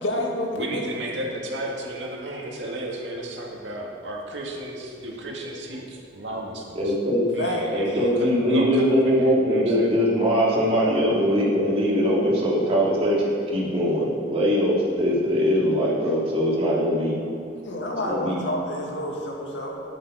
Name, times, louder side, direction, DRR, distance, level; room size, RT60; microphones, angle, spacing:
voice 1, 0.0-1.0 7.4-7.7 17.6-19.8, left 1 dB, 70° left, -1 dB, 2.2 m, -29 dB
voice 2, 0.6-6.9 7.3-9.9, right 1 dB, 70° right, -2 dB, 2.2 m, -33 dB
voice 3, 6.7-7.3 7.7-13.2 13.5-17.2 18.0-18.4, equal, 35° right, -6 dB, 3.2 m, -21 dB
13.0 x 11.0 x 5.0 m, 2.7 s
head